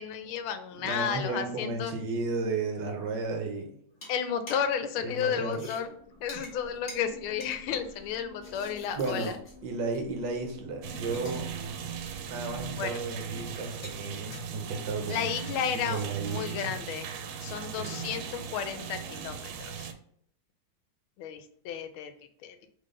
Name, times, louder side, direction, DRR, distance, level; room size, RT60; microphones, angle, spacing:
voice 1, 0.0-1.9 4.1-5.9 6.2-9.3 12.8-13.0 15.1-17.1 17.4-19.9 21.2-22.1 22.4-22.6, left 8 dB, 90° left, 9 dB, 1.5 m, -33 dB
voice 2, 0.8-3.7 5.0-5.6 8.9-9.3 9.6-11.5 12.2-15.6 15.9-16.7 17.8-18.0, right 3 dB, 70° right, 4 dB, 1.3 m, -34 dB
sound 1, 3.9-4.8 5.1-10.2 10.5-10.6 11.0-11.6 11.8-13.1 13.3-17.2, left 1 dB, 40° left, 1.4 m, -49 dB
sound 2, 5.8-13.6, left 4 dB, 5° right, 0.5 m, -52 dB
sound 3, 10.8-19.9, right 7 dB, 85° right, 1.4 m, -38 dB
3.8 x 3.5 x 3.7 m, 0.66 s
omnidirectional pair, 2.2 m